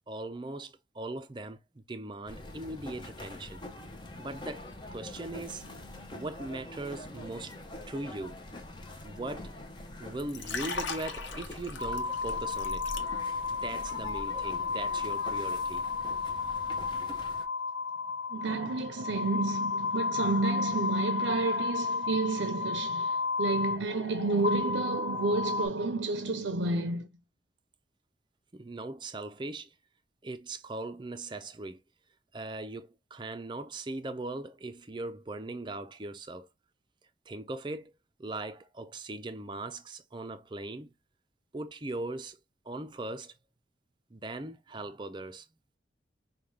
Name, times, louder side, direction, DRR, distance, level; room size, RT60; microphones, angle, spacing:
voice 1, 0.1-3.6 4.2-5.6 6.1-7.6 7.9-8.5 9.0-9.5 10.0-12.8 13.5-15.8 28.5-29.7 30.2-31.8 32.3-36.5 37.3-37.9 38.2-40.9 41.5-42.4 42.7-43.3 44.1-45.5, right 2 dB, 25° right, 0.5 m, -39 dB
sound 1, 2.3-17.5, left 1 dB, 25° left, 0.7 m, -45 dB
Liquid, 10.2-13.5 13.8-14.1, left 4 dB, 80° left, 0.8 m, -39 dB
sound 2, 11.8-25.7, left 4 dB, 55° left, 1.4 m, -33 dB
voice 2, 18.3-27.1, right 3 dB, 85° right, 0.6 m, -30 dB
5.4 x 2.3 x 3.2 m
head